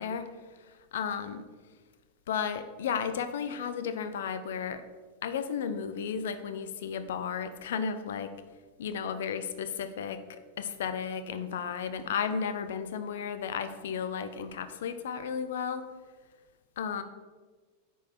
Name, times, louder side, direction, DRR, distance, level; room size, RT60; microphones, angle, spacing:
voice 1, 0.0-1.4 2.3-4.8 5.2-8.3 8.8-15.8 16.8-17.0, left 7 dB, 60° left, 11 dB, 0.6 m, -34 dB
9.7 x 5.5 x 4.3 m, 1.4 s
figure-of-eight pair, 90°, 0 cm